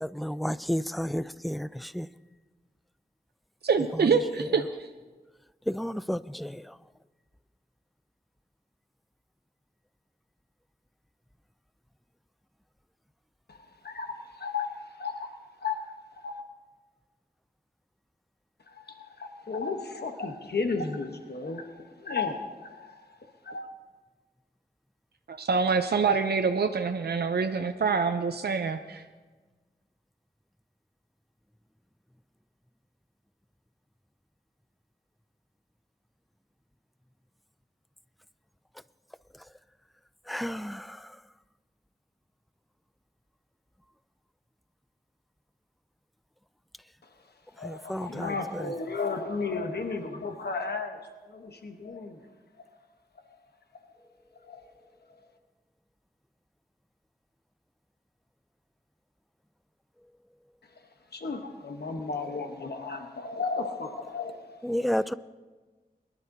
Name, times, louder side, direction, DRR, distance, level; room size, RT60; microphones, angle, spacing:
voice 1, 0.0-2.1 3.9-4.5 5.7-6.8 40.3-41.2 47.6-48.7 64.6-65.1, equal, ahead, 15 dB, 0.4 m, -32 dB
voice 2, 3.6-4.9 25.3-29.0, right 5 dB, 80° right, 6 dB, 0.6 m, -26 dB
voice 3, 13.5-16.4 18.7-23.2 23.4-23.7 47.0-47.2 47.6-51.0 51.3-52.2 52.6-52.7 54.4-54.6 55.1-55.2 60.7-60.8 61.1-64.8, left 4 dB, 90° left, 5 dB, 1.0 m, -34 dB
22.5 x 11.5 x 2.7 m, 1.3 s
wide cardioid pair, 60°, 16 cm